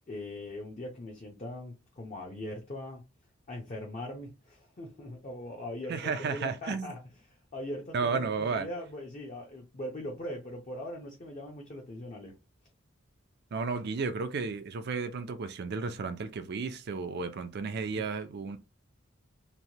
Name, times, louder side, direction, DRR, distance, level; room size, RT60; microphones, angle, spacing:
voice 1, 0.1-3.0 3.5-7.0 7.2-12.4 17.7-18.0, left 1 dB, 35° left, 0.6 m, -41 dB
voice 2, 5.9-6.9 7.9-8.7 13.5-18.6, right 4 dB, 55° right, 0.4 m, -33 dB
3.0 x 2.2 x 2.7 m
head